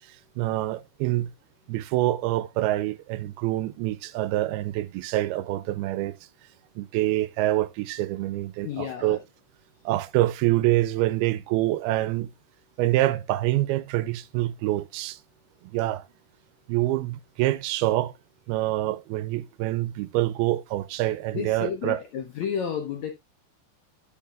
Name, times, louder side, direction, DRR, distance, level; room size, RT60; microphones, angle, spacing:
voice 1, 0.4-1.3 1.7-6.2 6.8-9.2 9.9-12.3 12.8-15.2 15.7-16.0 16.7-18.1 18.5-22.0, right 16 dB, 85° right, 2.5 m, -26 dB
voice 2, 8.6-9.2 21.3-23.1, left 8 dB, 70° left, 1.7 m, -31 dB
12.5 x 5.7 x 2.4 m
omnidirectional pair, 4.4 m